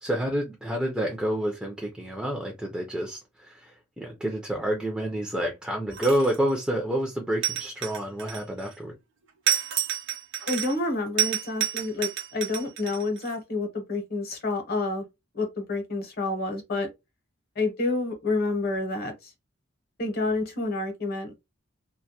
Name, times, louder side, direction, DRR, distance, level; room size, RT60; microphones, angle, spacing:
voice 1, 0.0-8.9, right 1 dB, 5° right, 0.4 m, -29 dB
sound 1, 5.9-6.5 7.4-8.7 9.5-10.9 11.2-13.3, right 10 dB, 60° right, 0.6 m, -29 dB
voice 2, 10.5-15.1 15.3-16.9 17.6-19.3 20.0-21.3, left 2 dB, 50° left, 0.8 m, -29 dB
2.2 x 2.1 x 2.7 m
head